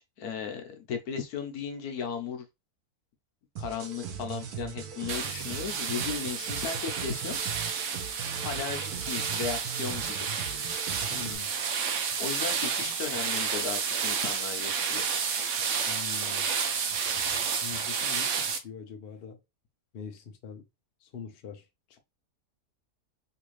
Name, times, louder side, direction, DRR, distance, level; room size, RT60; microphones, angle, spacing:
voice 1, 0.2-2.5 3.6-7.4 8.4-10.3 12.2-15.0, left 7 dB, 80° left, 1.2 m, -36 dB
sound 1, 3.6-11.4, right 7 dB, 85° right, 1.2 m, -39 dB
sound 2, 5.1-18.6, right 6 dB, 65° right, 0.8 m, -31 dB
voice 2, 11.1-11.5 12.8-12.9 15.9-16.5 17.5-19.4 19.9-20.6 21.0-21.7, left 6 dB, 55° left, 0.7 m, -43 dB
3.2 x 2.5 x 3.1 m
omnidirectional pair, 1.6 m